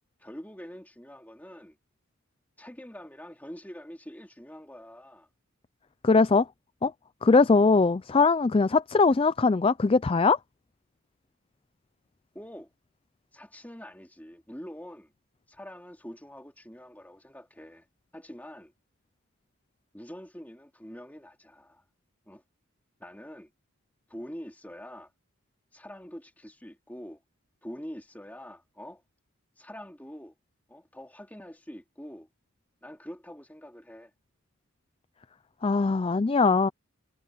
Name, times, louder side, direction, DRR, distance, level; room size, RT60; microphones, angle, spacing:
voice 1, 0.2-1.8 2.6-5.3 12.3-12.7 13.3-15.1 15.5-17.9 18.1-18.7 19.9-21.8 22.3-22.4 23.0-23.5 24.1-25.1 25.7-27.2 27.6-29.0 29.6-30.3 30.7-32.3 32.8-34.1, equal, 5° left, 2.9 m, -45 dB
voice 2, 6.0-6.5 6.8-6.9 7.2-10.4 35.6-36.7, left 4 dB, 25° left, 0.4 m, -21 dB
head